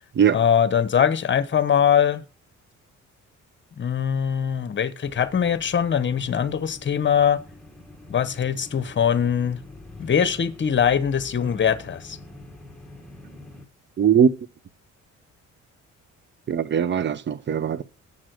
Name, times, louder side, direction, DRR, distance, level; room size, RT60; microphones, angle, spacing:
voice 1, 0.3-2.2 3.8-7.4 8.1-9.6 10.0-12.2, left 8 dB, 40° left, 1.0 m, -22 dB
sound 1, 5.0-13.6, left 1 dB, ahead, 1.8 m, -45 dB
voice 2, 14.0-14.3 16.5-17.8, right 8 dB, 35° right, 0.7 m, -20 dB
7.3 x 6.2 x 7.7 m
cardioid pair, 90°, 30 cm